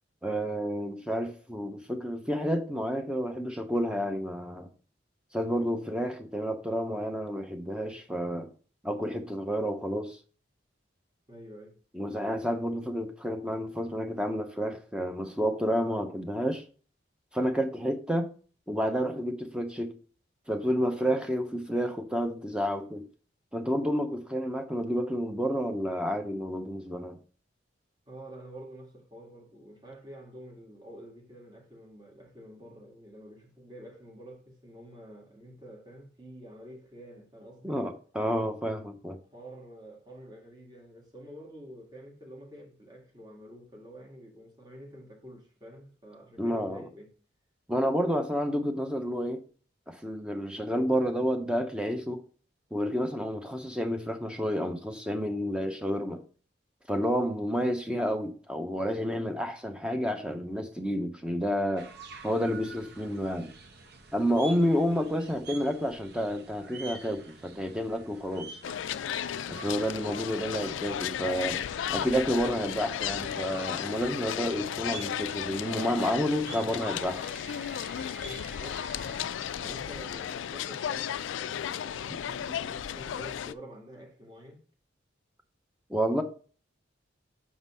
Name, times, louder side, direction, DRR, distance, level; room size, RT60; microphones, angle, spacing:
voice 1, 0.2-4.7 5.3-8.5 8.8-10.2 11.9-16.6 17.3-18.3 18.7-19.9 20.5-23.1 23.5-27.2 37.6-39.2 46.4-46.8 47.7-49.4 49.9-52.2 52.7-56.2 56.9-61.9 62.2-63.5 64.1-68.6 69.5-71.6 71.9-77.3 82.1-82.2 85.9-86.2, equal, 5° right, 0.7 m, -30 dB
voice 2, 11.3-11.8 28.1-37.8 39.2-47.1 70.0-70.4 78.3-79.2 79.6-84.6, right 1 dB, 20° right, 1.8 m, -48 dB
sound 1, 61.8-79.3, right 4 dB, 55° right, 0.9 m, -48 dB
sound 2, 68.6-83.5, left 9 dB, 80° left, 0.3 m, -34 dB
6.0 x 4.0 x 5.4 m
head